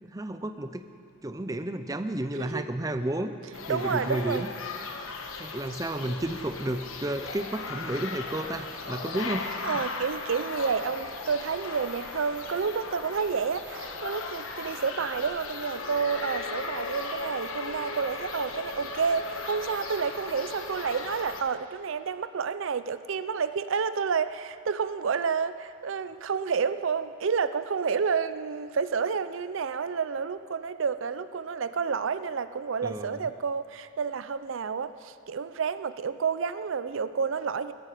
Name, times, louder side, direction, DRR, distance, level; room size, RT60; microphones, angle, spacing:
voice 1, 0.0-0.9 1.2-3.3 3.6-4.5 5.4-9.5 32.8-33.3, right 1 dB, 15° right, 9 dB, 0.5 m, -32 dB
sound 1, 3.5-21.4, left 3 dB, 85° left, 1.2 m, -37 dB
voice 2, 3.7-4.4 9.6-37.7, right 6 dB, 70° right, 13 dB, 0.5 m, -30 dB
17.5 x 15.0 x 5.0 m, 2.4 s
head